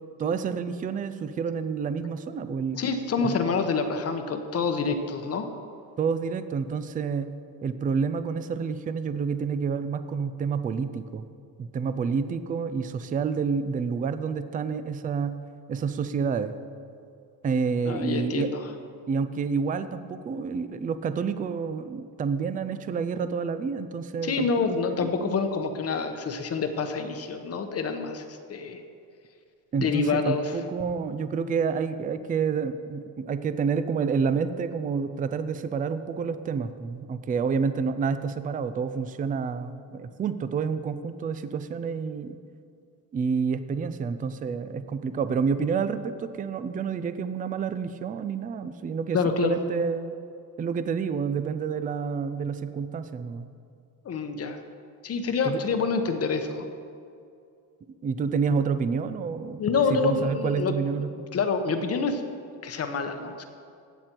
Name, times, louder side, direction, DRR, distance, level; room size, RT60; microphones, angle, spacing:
voice 1, 0.2-2.8 3.2-3.4 6.0-7.3 7.6-11.2 11.6-15.4 15.7-16.5 17.4-18.5 19.1-25.4 29.7-42.4 43.1-50.1 50.6-53.5 55.4-55.6 58.0-59.6 59.9-61.3, right 5 dB, 20° right, 12 dB, 0.4 m, -29 dB
voice 2, 2.7-5.5 17.9-18.6 24.2-28.8 29.8-30.5 49.1-49.6 54.0-54.6 55.0-56.7 59.6-60.7 61.3-62.2 62.6-63.4, left 5 dB, 40° left, 7 dB, 0.9 m, -27 dB
15.0 x 8.5 x 4.5 m, 2.4 s
cardioid pair, 140°, 39 cm